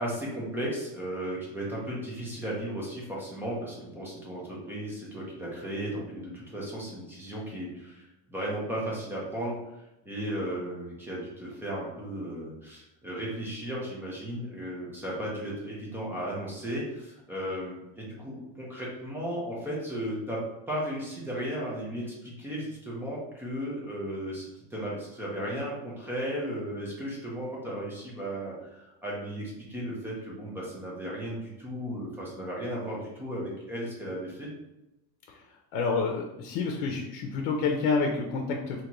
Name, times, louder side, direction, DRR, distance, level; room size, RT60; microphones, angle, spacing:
voice 1, 0.0-9.6 10.0-20.4 20.7-34.5, equal, 5° right, -5 dB, 0.5 m, -35 dB
voice 2, 35.3-38.8, left 4 dB, 75° left, 2 dB, 0.7 m, -29 dB
3.8 x 2.9 x 2.9 m, 0.91 s
cardioid pair, 175°, 50 cm